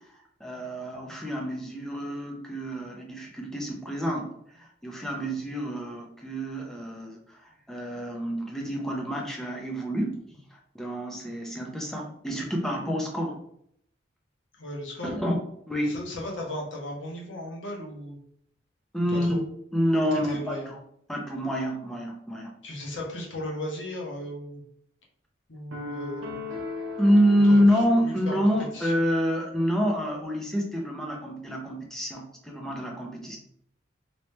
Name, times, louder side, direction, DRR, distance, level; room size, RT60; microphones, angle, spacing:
voice 1, 0.4-4.3 4.5-13.4 15.0-15.3 15.7-16.0 18.9-19.4 19.7-20.6 21.1-22.5 27.0-33.4, equal, ahead, -1 dB, 0.6 m, -27 dB
voice 2, 14.6-15.1 15.8-18.2 19.1-19.4 20.1-20.8 22.6-24.6 25.5-26.5 27.4-28.4 28.7-28.9, left 1 dB, 75° left, -2 dB, 1.1 m, -36 dB
sound 1, 25.7-29.0, left 3 dB, 85° right, 0.7 m, -38 dB
3.1 x 3.0 x 3.1 m, 0.69 s
head